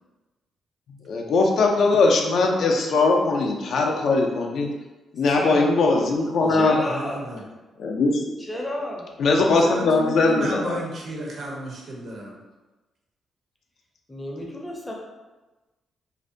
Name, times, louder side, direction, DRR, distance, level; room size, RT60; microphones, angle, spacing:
voice 1, 1.1-4.7 5.1-6.8 7.8-8.2 9.2-10.8, left 3 dB, 70° left, 1 dB, 0.3 m, -20 dB
voice 2, 5.3-6.1 6.5-7.3 8.4-9.1 14.1-14.9, left 1 dB, 15° left, -1 dB, 0.5 m, -32 dB
voice 3, 6.4-7.4 9.6-12.4, right 1 dB, 55° right, -2 dB, 0.6 m, -33 dB
2.5 x 2.1 x 2.5 m, 1.1 s
cardioid pair, 105°, 0 cm